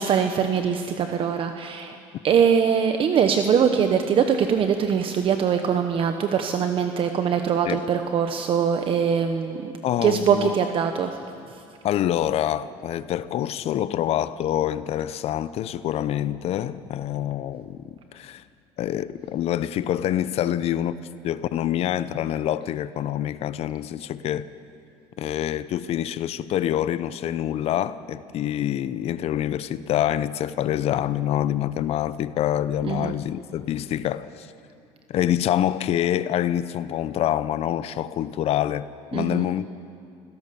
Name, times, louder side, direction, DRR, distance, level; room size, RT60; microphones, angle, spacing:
voice 1, 0.0-2.0 2.2-9.7 10.0-11.2 32.8-33.1 39.1-39.4, right 7 dB, 45° right, 1.1 m, -22 dB
voice 2, 9.8-10.5 11.8-18.4 18.8-21.0 21.2-24.5 25.2-34.5 35.1-39.7, left 11 dB, 55° left, 0.8 m, -26 dB
25.0 x 17.0 x 7.0 m
cardioid pair, 115°, 12 cm